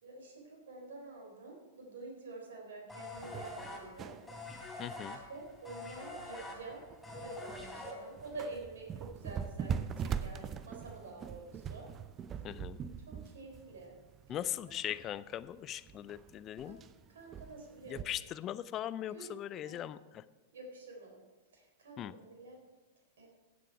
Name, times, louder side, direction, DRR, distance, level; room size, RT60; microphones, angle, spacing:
voice 1, 0.0-4.2 5.3-6.8 7.2-11.9 13.1-13.9 14.3-14.4 16.6-16.8 17.1-18.1 19.1-19.4 19.6-19.8 20.5-21.2 21.5-22.6 23.2-23.3, right 3 dB, 65° right, 0 dB, 3.9 m, -48 dB
sound 1, 2.9-8.4, left 2 dB, 5° left, 3.3 m, -45 dB
sound 2, 3.1-18.0, right 7 dB, 25° right, 0.6 m, -43 dB
voice 2, 4.8-5.2 12.4-12.8 14.3-16.8 17.9-20.2 22.0-22.1, left 11 dB, 30° left, 16 dB, 0.5 m, -40 dB
16.0 x 7.6 x 4.8 m, 1.2 s
figure-of-eight pair, 100°, 0 cm